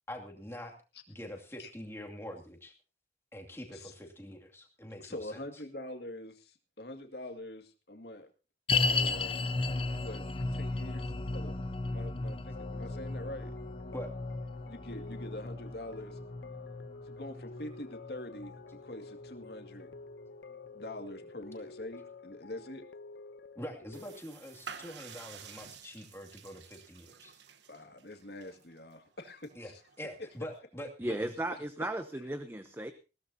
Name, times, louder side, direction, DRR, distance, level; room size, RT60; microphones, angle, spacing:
voice 1, 0.1-0.8 1.1-2.7 3.3-5.4 13.9-14.1 23.5-27.3 29.6-29.7 30.0-31.3, equal, 15° left, 1 dB, 2.4 m, -44 dB
voice 2, 5.0-8.3 8.9-9.4 10.0-11.6 11.9-13.5 14.6-16.2 17.0-19.9 20.7-22.8 27.7-29.8, left 1 dB, 70° left, 5 dB, 2.1 m, -44 dB
sound 1, 8.7-20.0 20.2-20.3 21.0-21.1, left 3 dB, 30° left, 0.9 m, -35 dB
sound 2, 12.5-24.2, left 4 dB, 90° left, 0.8 m, -49 dB
sound 3, 23.9-30.6, right 6 dB, 90° right, 1.1 m, -51 dB
voice 3, 31.0-32.9, right 1 dB, 15° right, 9 dB, 0.7 m, -35 dB
20.5 x 16.0 x 2.8 m, 0.31 s
head